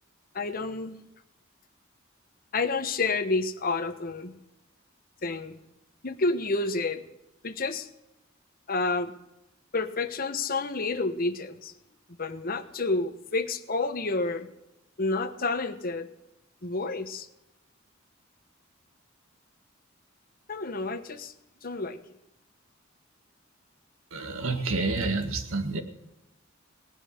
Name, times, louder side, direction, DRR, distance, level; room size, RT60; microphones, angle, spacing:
voice 1, 0.3-1.0 2.5-4.4 5.2-5.6 6.0-7.0 7.4-7.9 8.7-9.1 9.7-11.7 12.2-14.5 15.0-16.1 16.6-17.3 20.5-21.3 21.6-22.0, left 3 dB, 45° left, 8 dB, 1.3 m, -29 dB
voice 2, 24.1-25.8, right 3 dB, 85° right, 6 dB, 1.9 m, -29 dB
18.5 x 11.0 x 6.6 m, 0.92 s
head